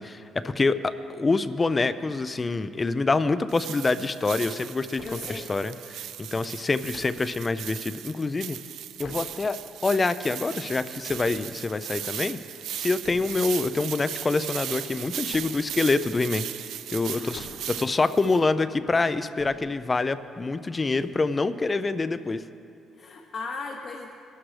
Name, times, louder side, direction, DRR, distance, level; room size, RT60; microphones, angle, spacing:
voice 1, 0.0-5.7 6.2-8.6 9.0-12.4 12.8-16.5 16.9-22.4, left 3 dB, 20° left, 12 dB, 0.4 m, -26 dB
sound 1, 3.5-18.4, right 11 dB, 75° right, 0.4 m, -37 dB
sound 2, 5.0-5.6 6.4-7.5 8.5-9.7 10.4-11.8 12.3-13.4 14.0-14.1 14.7-16.0 16.8-17.9 18.8-20.0 20.8-21.1, left 2 dB, 85° left, 3.7 m, -48 dB
voice 2, 5.0-5.5 17.1-18.0 22.9-24.1, left 4 dB, 45° left, 1 dB, 0.9 m, -38 dB
20.5 x 12.0 x 3.3 m, 2.5 s
cardioid pair, 130°, 0 cm